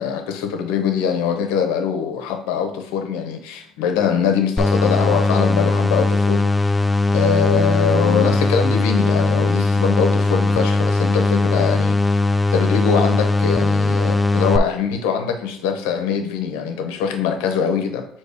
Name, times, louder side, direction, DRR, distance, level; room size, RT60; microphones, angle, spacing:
voice 1, 0.0-6.7 7.1-12.2 12.5-18.0, left 7 dB, 90° left, 5 dB, 1.0 m, -22 dB
sound 1, 4.6-14.6, left 2 dB, 15° left, 0.4 m, -19 dB
6.4 x 3.0 x 4.8 m, 0.67 s
cardioid pair, 115°, 0 cm